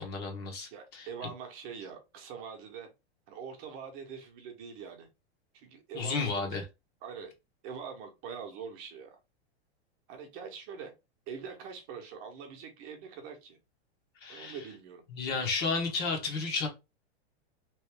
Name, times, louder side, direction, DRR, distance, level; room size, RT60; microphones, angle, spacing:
voice 1, 0.0-1.1 5.9-6.6 14.2-14.6 15.1-16.7, left 4 dB, 30° left, 3 dB, 1.0 m, -32 dB
voice 2, 0.7-2.9 3.3-5.1 5.5-6.6 7.0-7.3 7.6-9.2 10.1-10.9 11.3-13.6 14.3-15.0, right 6 dB, 40° right, 3 dB, 1.0 m, -44 dB
3.1 x 2.7 x 3.3 m, 0.25 s
supercardioid pair, 145°, 33 cm